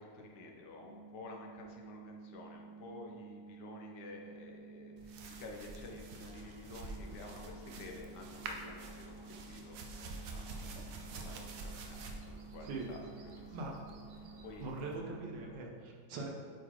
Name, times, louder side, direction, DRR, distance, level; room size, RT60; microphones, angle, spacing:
voice 1, 0.0-13.7 14.2-14.7, left 2 dB, 75° left, 1 dB, 1.4 m, -51 dB
sound 1, 0.8-15.5, right 4 dB, 60° left, 1.1 m, -53 dB
sound 2, 5.0-15.0, right 3 dB, 65° right, 0.9 m, -48 dB
sound 3, 6.2-15.6, equal, 40° right, 1.3 m, -59 dB
voice 2, 14.6-16.3, right 3 dB, 80° right, -1 dB, 1.6 m, -42 dB
8.2 x 4.0 x 3.1 m, 2.1 s
omnidirectional pair, 1.9 m